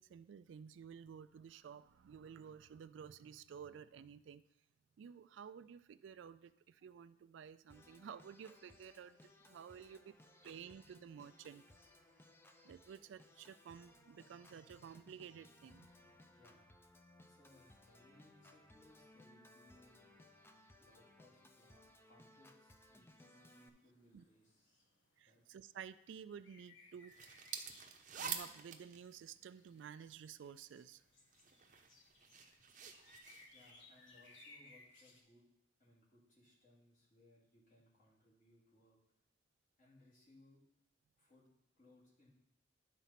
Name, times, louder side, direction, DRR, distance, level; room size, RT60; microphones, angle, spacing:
voice 1, 0.0-4.4 5.0-10.2 10.4-11.6 12.6-16.1 24.1-24.2 25.2-27.1 28.1-31.0, right 7 dB, 70° right, 15 dB, 0.3 m, -53 dB
Organ, 7.7-23.7, left 1 dB, 10° left, 0.5 m, -64 dB
voice 2, 16.3-16.7 17.2-20.1 20.8-24.8 25.3-25.4 33.5-35.4 35.8-39.0 39.8-40.6 41.2-41.5 41.8-42.3, left 1 dB, 40° left, -6 dB, 2.5 m, -67 dB
sound 1, 23.2-35.2, left 2 dB, 80° left, 1.2 m, -65 dB
sound 2, 27.1-30.2 30.9-34.4, right 7 dB, 40° right, 0.7 m, -48 dB
10.0 x 4.1 x 5.7 m, 0.82 s
head